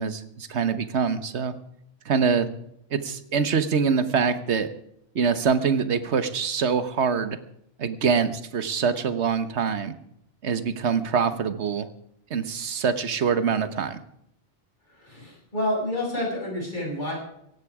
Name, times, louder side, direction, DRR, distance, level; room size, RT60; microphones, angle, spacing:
voice 1, 0.0-1.5 2.0-2.5 2.9-4.7 5.1-7.4 7.8-9.9 10.4-11.9 12.3-14.0, right 6 dB, 70° right, 12 dB, 1.5 m, -24 dB
voice 2, 14.9-17.1, left 1 dB, 40° left, -2 dB, 7.1 m, -29 dB
18.0 x 15.0 x 4.9 m, 0.76 s
omnidirectional pair, 1.2 m